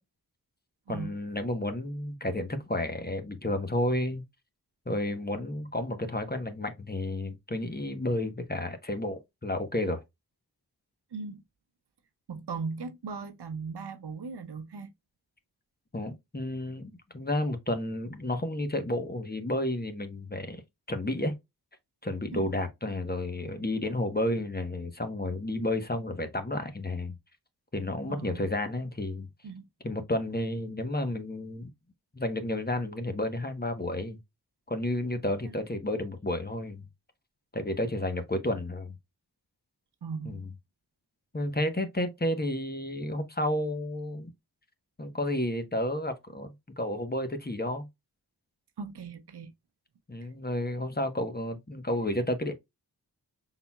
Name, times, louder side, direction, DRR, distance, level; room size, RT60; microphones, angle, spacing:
voice 1, 0.9-4.2 4.9-10.0 15.9-20.6 20.9-21.3 22.0-27.2 27.7-29.3 29.8-31.7 32.1-34.2 34.7-36.8 37.5-39.0 40.2-40.5 41.3-44.3 45.0-47.9 50.1-52.5, left 1 dB, 25° left, 1.1 m, -31 dB
voice 2, 11.1-11.4 12.3-14.9 22.3-22.5 28.1-28.4 29.4-29.7 40.0-40.4 48.8-49.5, right 5 dB, 85° right, 0.8 m, -38 dB
5.7 x 3.9 x 2.3 m
wide cardioid pair, 55°, 39 cm